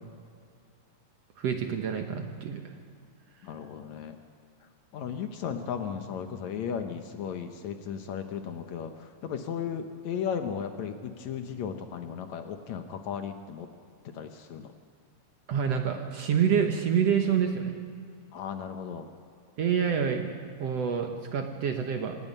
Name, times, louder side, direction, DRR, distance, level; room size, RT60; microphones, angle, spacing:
voice 1, 1.4-2.8 15.5-17.8 19.6-20.3 20.6-22.2, right 7 dB, 60° right, 4 dB, 1.8 m, -27 dB
voice 2, 3.4-4.2 4.9-13.7 14.1-14.7 18.3-19.1, left 7 dB, 65° left, 6 dB, 2.0 m, -35 dB
26.0 x 18.0 x 5.4 m, 2.3 s
omnidirectional pair, 3.9 m